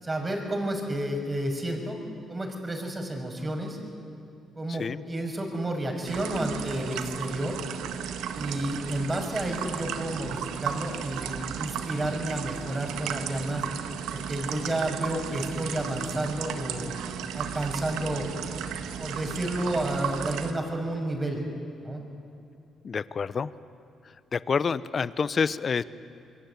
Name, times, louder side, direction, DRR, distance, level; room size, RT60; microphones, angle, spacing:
voice 1, 0.0-2.0 2.3-3.8 4.5-7.6 8.3-13.6 14.1-17.0 17.3-18.3 19.0-21.4 21.8-22.0, right 1 dB, 25° right, 3 dB, 6.3 m, -31 dB
voice 2, 4.7-5.0 22.8-23.5 24.3-25.8, left 5 dB, 45° left, 17 dB, 0.8 m, -28 dB
sound 1, 6.0-20.5, right 8 dB, 90° right, 1.7 m, -35 dB
27.0 x 22.5 x 9.6 m, 2.7 s
cardioid pair, 90°, 0 cm